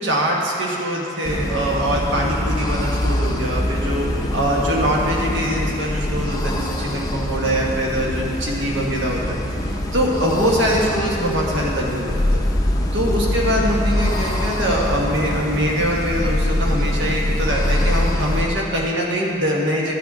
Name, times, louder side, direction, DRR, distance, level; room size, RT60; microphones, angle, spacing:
voice 1, 0.0-12.4 12.9-19.9, equal, 65° right, -2 dB, 1.6 m, -23 dB
sound 1, 1.2-18.5, left 1 dB, 20° left, 0.6 m, -23 dB
13.5 x 7.5 x 4.2 m, 2.7 s
head